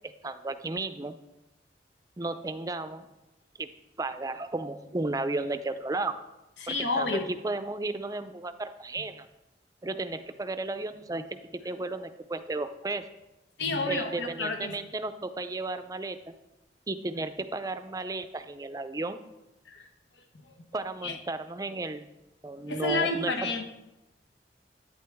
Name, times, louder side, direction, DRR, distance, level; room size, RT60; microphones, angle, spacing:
voice 1, 0.2-1.2 2.2-3.1 3.6-3.7 4.0-6.1 6.7-9.3 9.8-11.4 11.6-13.0 13.9-16.3 16.9-19.2 20.7-22.1 22.4-23.3, right 2 dB, 20° right, 10 dB, 0.4 m, -34 dB
voice 2, 6.6-7.3 13.6-14.7 19.7-19.9 21.0-21.2 22.7-23.6, left 3 dB, 90° left, 5 dB, 1.0 m, -30 dB
10.5 x 8.8 x 3.5 m, 0.98 s
head